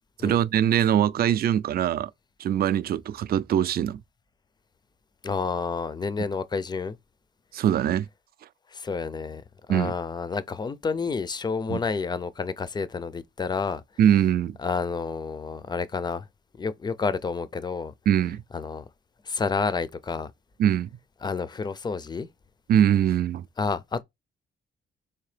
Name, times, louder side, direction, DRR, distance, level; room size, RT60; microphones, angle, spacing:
voice 1, 0.2-2.1 2.4-4.0 7.5-8.1 9.7-9.9 11.7-11.8 14.0-14.6 18.1-18.4 20.6-20.9 22.7-23.5, right 10 dB, 50° right, 0.4 m, -22 dB
voice 2, 5.2-7.0 8.7-9.4 9.7-13.8 14.6-16.3 16.6-17.9 18.5-18.8 19.2-20.3 21.2-22.3 23.6-24.0, left 4 dB, 20° left, 0.4 m, -29 dB
3.5 x 2.8 x 3.3 m
cardioid pair, 90°, 20 cm